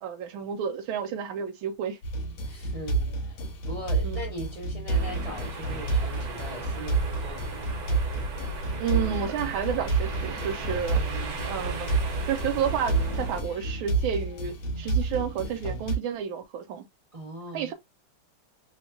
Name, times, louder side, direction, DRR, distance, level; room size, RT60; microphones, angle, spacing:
voice 1, 0.0-2.0 4.0-4.2 8.8-11.0 11.5-16.9 17.5-17.7, right 8 dB, 80° right, 1.4 m, -31 dB
sound 1, 2.0-16.0, right 3 dB, 70° left, 1.4 m, -30 dB
voice 2, 2.5-3.4 3.7-7.7 10.9-11.5 17.1-17.7, right 1 dB, 30° right, 0.6 m, -40 dB
sound 2, 4.9-13.4, right 2 dB, 60° right, 1.1 m, -36 dB
3.3 x 2.2 x 2.5 m
omnidirectional pair, 2.3 m